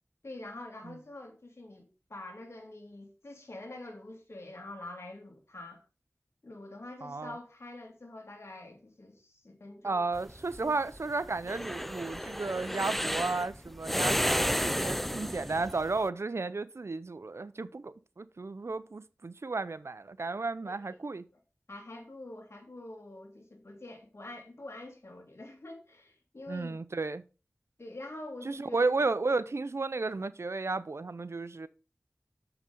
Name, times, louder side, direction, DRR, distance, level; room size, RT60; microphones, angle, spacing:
voice 1, 0.2-5.8 6.4-10.1 10.6-10.7 20.6-21.0 21.3-21.4 21.7-26.8 27.8-28.9, left 2 dB, 65° left, 2.5 m, -46 dB
voice 2, 7.0-7.4 9.8-21.2 26.5-27.2 28.4-31.7, right 3 dB, 70° right, 0.6 m, -33 dB
sound 1, 10.1-16.0, equal, 5° left, 0.4 m, -32 dB
7.0 x 5.9 x 5.3 m
wide cardioid pair, 45°, 5 cm